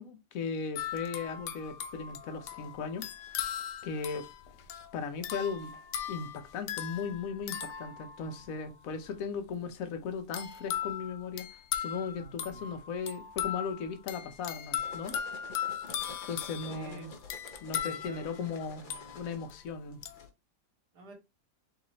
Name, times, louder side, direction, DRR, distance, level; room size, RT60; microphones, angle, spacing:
voice 1, 0.0-3.1 3.8-4.3 4.9-5.7 6.1-11.5 11.8-15.1 16.3-17.1 17.6-18.8 19.1-20.0, left 5 dB, 60° left, 1.2 m, -37 dB
sound 1, 0.8-8.6 10.3-19.5 20.0-20.3, left 9 dB, 85° left, 1.3 m, -39 dB
voice 2, 12.2-12.7 16.7-17.1 17.7-19.2 20.9-21.1, right 3 dB, 75° right, 2.0 m, -50 dB
sound 2, 14.4-20.3, left 3 dB, 40° left, 0.8 m, -50 dB
4.2 x 3.9 x 3.0 m
omnidirectional pair, 1.8 m